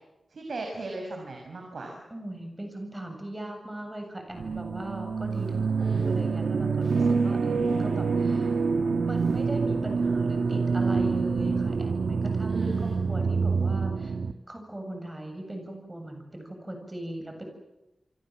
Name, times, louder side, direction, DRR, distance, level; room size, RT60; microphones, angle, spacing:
voice 1, 0.3-2.0 5.8-6.1 12.5-13.0, right 3 dB, 70° right, 2 dB, 6.5 m, -37 dB
voice 2, 2.1-8.6 9.0-14.2 14.5-17.4, right 1 dB, 15° right, 4 dB, 7.6 m, -39 dB
sound 1, 4.4-14.3, right 4 dB, 90° right, 1.3 m, -26 dB
28.5 x 24.5 x 7.8 m, 0.96 s
wide cardioid pair, 120°, 0 cm